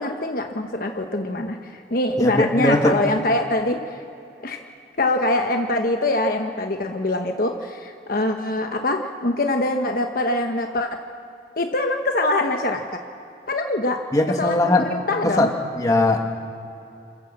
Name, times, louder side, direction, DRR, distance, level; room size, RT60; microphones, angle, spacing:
voice 1, 0.0-4.0 4.4-4.6 5.0-11.0 11.6-13.0 13.5-14.0 14.4-15.5, left 2 dB, 50° left, 4 dB, 1.1 m, -24 dB
voice 2, 2.2-3.0 14.1-14.9 15.2-15.5 15.8-16.5, left 1 dB, 20° left, 2 dB, 1.8 m, -20 dB
27.5 x 14.0 x 7.5 m, 2.7 s
head